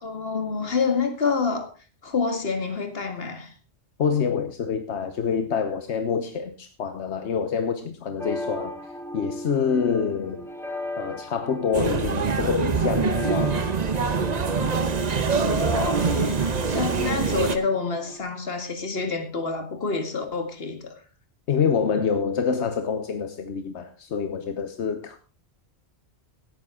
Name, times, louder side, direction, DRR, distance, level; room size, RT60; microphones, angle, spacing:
voice 1, 0.0-1.7 2.0-3.5 15.4-20.9, left 4 dB, 60° left, 2.1 m, -27 dB
voice 2, 4.0-8.8 9.1-10.5 11.0-13.6 14.6-14.7 21.5-25.2, left 6 dB, 85° left, 1.2 m, -26 dB
sound 1, 8.2-18.2, left 1 dB, ahead, 1.4 m, -37 dB
sound 2, 11.7-17.6, right 5 dB, 40° right, 1.0 m, -24 dB
17.0 x 9.2 x 3.7 m
omnidirectional pair, 1.1 m